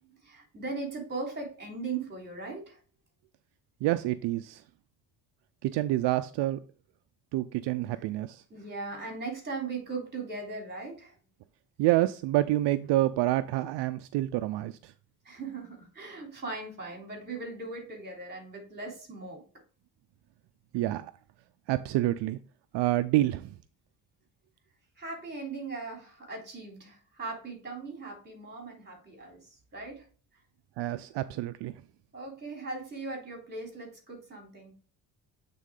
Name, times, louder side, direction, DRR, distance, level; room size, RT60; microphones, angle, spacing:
voice 1, 0.0-2.8 8.5-11.2 15.2-19.4 25.0-30.1 32.1-34.7, right 3 dB, 25° right, 1 dB, 3.2 m, -39 dB
voice 2, 3.8-4.6 5.6-6.6 7.3-8.4 11.8-14.9 20.7-21.1 21.7-22.4 22.7-23.5 30.8-31.7, right 15 dB, 75° right, 11 dB, 0.5 m, -28 dB
8.2 x 3.8 x 3.7 m, 0.39 s
cardioid pair, 100°, 42 cm